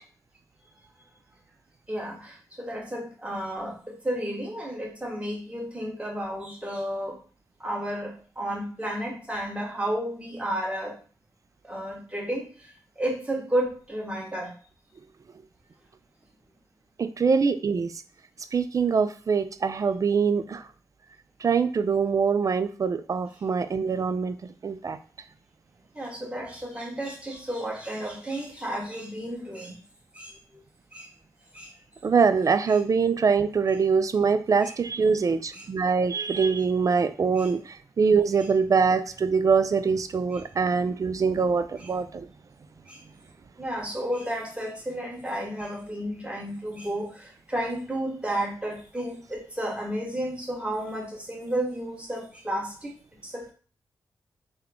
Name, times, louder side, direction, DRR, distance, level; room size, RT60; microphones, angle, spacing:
voice 1, 1.9-7.2 7.6-10.9 11.6-12.7 13.0-14.5 25.9-29.8 30.1-30.3 30.9-31.1 31.5-31.7 34.6-34.7 35.5-35.7 37.4-37.5 40.3-40.4 41.8-41.9 42.9-43.0 43.6-52.9 53.2-53.5, right 1 dB, 15° right, -2 dB, 1.5 m, -32 dB
voice 2, 17.0-17.9 18.5-20.6 21.4-24.4 24.6-25.0 32.0-42.3, right 5 dB, 45° right, 12 dB, 0.4 m, -23 dB
3.5 x 2.2 x 3.6 m, 0.40 s
supercardioid pair, 40°, 8 cm